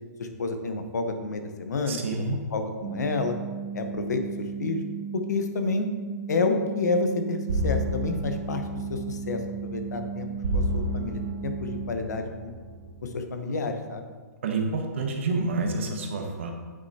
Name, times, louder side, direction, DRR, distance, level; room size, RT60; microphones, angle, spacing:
voice 1, 0.2-2.0 2.3-3.4 3.7-4.2 4.6-4.8 5.1-5.9 6.3-7.4 7.6-10.3 10.5-12.5 13.0-14.0, left 3 dB, 70° left, 6 dB, 1.1 m, -29 dB
voice 2, 1.9-2.4 14.4-16.5, right 3 dB, 40° right, 3 dB, 1.2 m, -28 dB
sound 1, 2.8-11.9, right 6 dB, 25° right, 0.8 m, -35 dB
sound 2, 7.5-13.2, equal, 60° right, 1.4 m, -32 dB
9.1 x 8.3 x 2.9 m, 1.4 s
hypercardioid pair, 180°, 10 cm